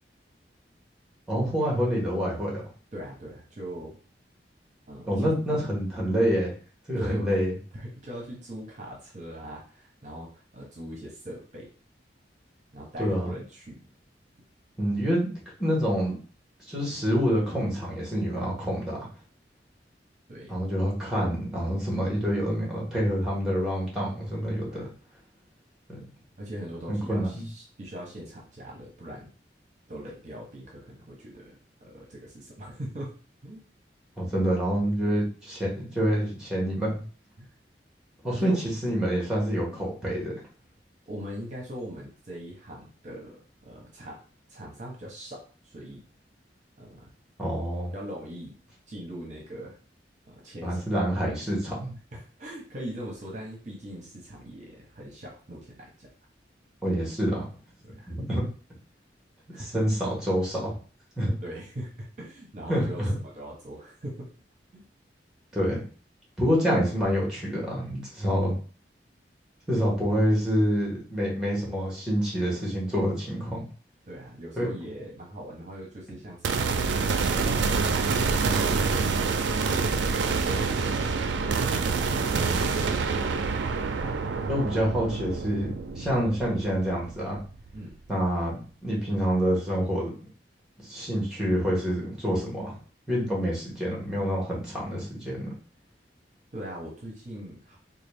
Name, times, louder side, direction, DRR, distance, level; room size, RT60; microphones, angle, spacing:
voice 1, 1.3-2.6 5.1-6.5 6.9-7.5 13.0-13.3 14.8-15.3 15.6-16.2 16.7-19.1 20.5-24.9 26.9-27.4 34.2-37.0 38.2-38.5 38.8-40.3 47.4-47.9 50.6-51.9 56.8-57.5 58.1-58.4 59.6-60.8 61.2-61.3 62.7-63.1 65.5-65.8 66.4-68.6 69.7-73.7 74.6-74.7 82.3-82.6 84.5-87.4 88.1-90.1 90.8-92.8 93.1-95.5, equal, 5° right, -4 dB, 1.3 m, -27 dB
voice 2, 2.9-4.0 4.9-5.3 7.0-7.4 7.7-11.7 12.7-13.7 20.3-20.6 24.6-24.9 26.4-29.3 29.9-33.1 33.4-33.6 37.4-37.5 38.3-38.6 39.0-39.1 41.1-44.2 44.5-46.0 46.8-47.1 47.9-48.5 48.9-49.8 50.3-50.8 52.1-56.1 57.8-58.1 59.5-59.8 61.4-64.2 64.7-64.8 74.1-78.4 87.7-88.0 96.5-97.8, equal, 40° right, -2 dB, 0.8 m, -41 dB
sound 1, 76.4-87.8, right 4 dB, 80° right, 0.4 m, -27 dB
3.8 x 2.3 x 3.4 m, 0.40 s
head